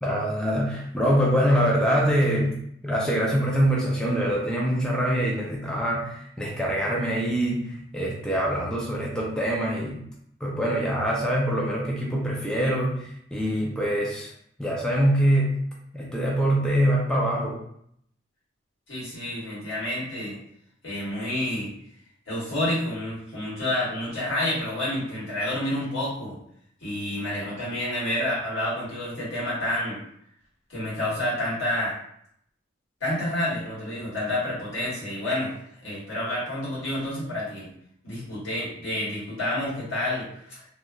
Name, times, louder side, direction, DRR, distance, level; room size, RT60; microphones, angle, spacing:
voice 1, 0.0-2.6 2.8-10.0 10.4-14.3 14.6-15.6 15.9-17.6, equal, 5° left, -4 dB, 0.4 m, -24 dB
voice 2, 18.9-20.4 20.8-21.7 22.3-26.4 26.8-30.0 30.7-32.0 33.0-35.5 35.8-37.7 38.0-40.6, left 1 dB, 75° left, -8 dB, 1.5 m, -29 dB
2.8 x 2.2 x 2.3 m, 0.69 s
head